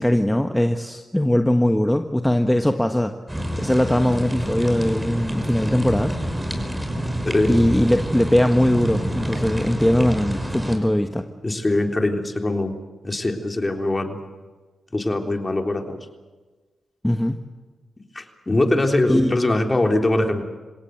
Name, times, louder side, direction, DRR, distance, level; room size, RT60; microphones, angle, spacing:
voice 1, 0.0-3.1 3.6-6.1 7.5-11.2 17.0-17.4 19.1-19.4, left 1 dB, 10° left, 6 dB, 1.5 m, -20 dB
sound 1, 3.3-10.8, equal, 15° right, 5.7 m, -28 dB
voice 2, 7.2-7.5 11.4-12.8 13.0-14.2 14.9-16.0 18.1-20.4, left 2 dB, 30° left, 4 dB, 3.5 m, -22 dB
27.5 x 17.5 x 8.0 m, 1.3 s
supercardioid pair, 40°, 0 cm